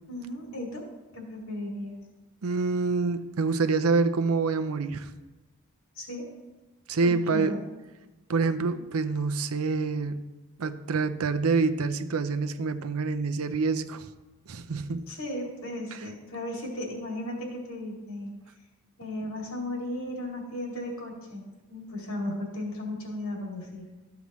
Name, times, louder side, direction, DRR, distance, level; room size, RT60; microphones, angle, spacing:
voice 1, 0.1-0.8 1.1-2.0 5.9-6.3 7.0-7.6 15.1-18.3 19.0-23.9, left 1 dB, 80° left, -1 dB, 2.4 m, -35 dB
voice 2, 2.4-5.1 6.9-7.6 8.3-10.2 10.6-14.1 14.5-15.1, right 4 dB, 85° right, 10 dB, 0.6 m, -26 dB
13.0 x 7.0 x 3.1 m, 1.1 s
head